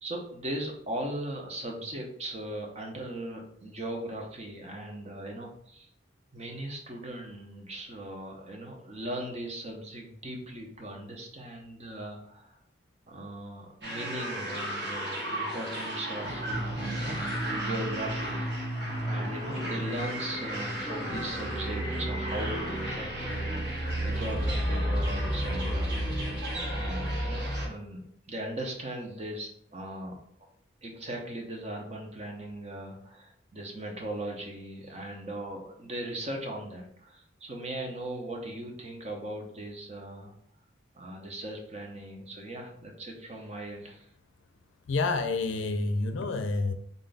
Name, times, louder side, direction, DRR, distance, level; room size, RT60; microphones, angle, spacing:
voice 1, 0.0-5.9 6.3-12.6 13.1-18.7 19.0-26.0 26.7-28.0 28.3-30.2 30.8-40.3 40.9-44.1, right 1 dB, 35° right, 0.7 m, -39 dB
sound 1, 13.8-27.7, right 1 dB, 60° right, 1.2 m, -32 dB
voice 2, 44.9-46.7, left 3 dB, 85° left, 0.5 m, -28 dB
3.7 x 2.2 x 3.9 m
head